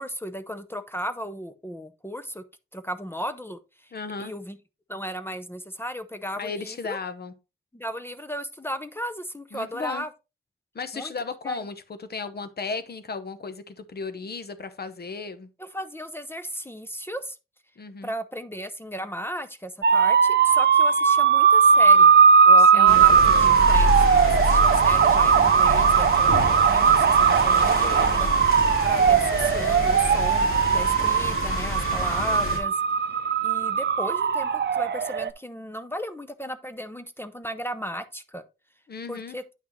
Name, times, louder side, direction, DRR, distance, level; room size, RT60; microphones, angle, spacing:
voice 1, 0.0-2.4 2.7-3.9 4.2-4.6 4.9-7.0 7.7-10.1 10.9-11.1 11.4-11.6 15.6-17.4 18.0-22.1 22.5-28.3 28.8-32.8 33.4-38.4 39.1-39.4, equal, 10° left, 0.6 m, -35 dB
voice 2, 3.9-4.3 6.4-7.3 9.5-10.1 10.7-15.5 17.8-18.1 22.6-23.0 23.4-23.7 38.9-39.4, left 4 dB, 50° left, 0.9 m, -35 dB
sound 1, 19.8-35.3, right 6 dB, 55° right, 0.6 m, -19 dB
sound 2, 22.9-32.6, left 2 dB, 85° left, 3.3 m, -28 dB
9.3 x 6.0 x 3.1 m
wide cardioid pair, 130°, 21 cm